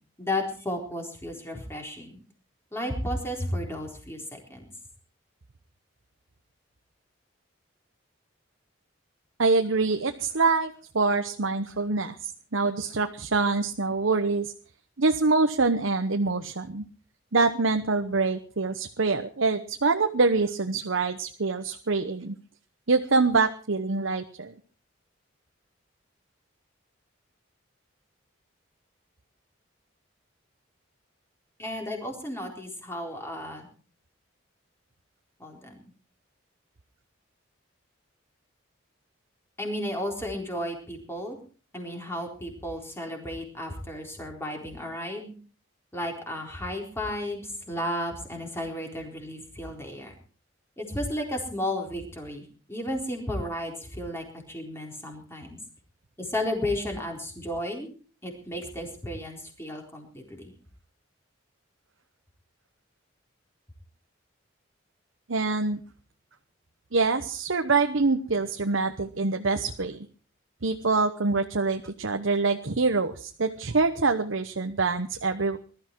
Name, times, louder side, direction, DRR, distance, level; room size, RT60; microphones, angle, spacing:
voice 1, 0.2-2.2 2.7-4.6 31.6-33.7 35.4-35.8 39.6-41.4 41.7-45.3 45.9-50.1 50.8-55.6 56.2-57.9 58.2-60.5, left 1 dB, 10° left, 1 dB, 4.0 m, -33 dB
voice 2, 9.4-14.5 15.0-16.8 17.3-22.3 22.9-24.5 65.3-65.8 66.9-70.0 70.6-75.6, right 3 dB, 75° right, 6 dB, 1.0 m, -25 dB
20.5 x 13.0 x 4.6 m, 0.39 s
head